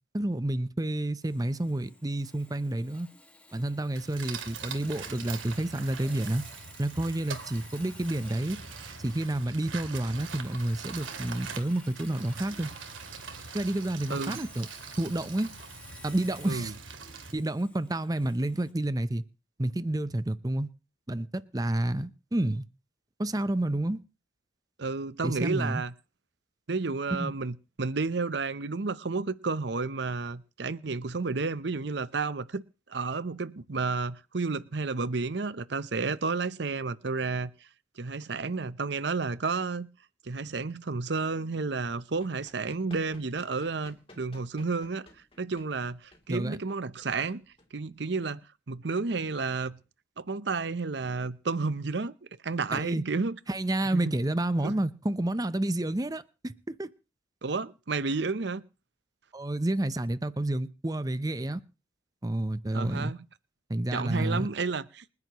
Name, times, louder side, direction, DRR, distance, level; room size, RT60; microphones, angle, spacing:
voice 1, 0.1-3.1 3.5-6.4 6.8-8.6 9.0-12.7 13.5-14.7 15.0-15.5 16.0-16.7 17.3-19.2 19.6-20.7 21.1-22.6 23.2-24.0 25.2-25.8 27.1-27.3 46.3-46.6 52.7-53.0 53.5-56.9 59.3-61.6 62.2-63.1 63.7-64.5, right 1 dB, 20° right, 0.7 m, -30 dB
Sawing, 1.2-18.7, left 2 dB, 5° left, 1.8 m, -53 dB
sound 1, 3.9-17.3, right 5 dB, 85° right, 2.2 m, -43 dB
voice 2, 14.1-14.4 16.5-16.7 24.8-25.9 26.7-32.6 32.9-37.5 38.0-39.9 40.2-45.1 45.4-47.4 47.7-48.4 48.7-49.8 50.2-52.1 52.4-53.4 53.8-54.1 54.6-54.7 57.4-58.6 62.7-63.2 63.9-65.1, right 4 dB, 60° right, 0.7 m, -31 dB
Run, 42.2-48.3, left 2 dB, 30° left, 3.0 m, -57 dB
28.5 x 11.0 x 3.0 m
head